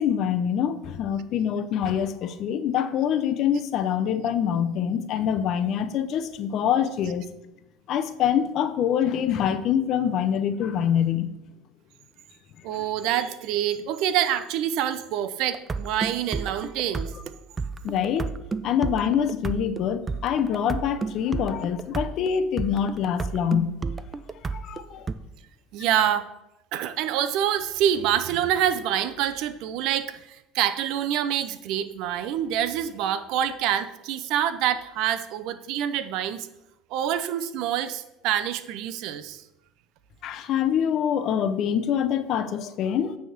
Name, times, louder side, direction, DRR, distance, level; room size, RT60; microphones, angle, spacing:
voice 1, 0.0-7.3 7.9-11.3 17.8-18.3 18.6-23.7 24.5-25.1 40.2-43.2, left 8 dB, 55° left, 0.7 m, -25 dB
voice 2, 12.6-17.1 25.7-26.3 26.7-36.5 36.9-39.4, right 10 dB, 65° right, 0.6 m, -26 dB
sound 1, 15.5-25.1, right 4 dB, 25° right, 0.4 m, -32 dB
9.0 x 3.6 x 5.9 m
supercardioid pair, 100°, 0 cm